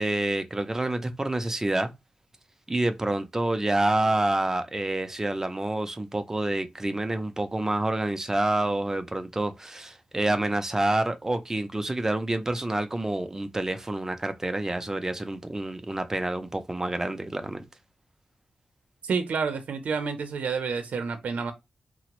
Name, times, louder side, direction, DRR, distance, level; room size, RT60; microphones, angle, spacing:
voice 1, 0.0-1.9 2.7-17.6, right 2 dB, 20° right, 0.5 m, -28 dB
voice 2, 19.1-21.5, right 5 dB, 80° right, 0.6 m, -29 dB
3.5 x 2.0 x 2.9 m
cardioid pair, 80°, 3 cm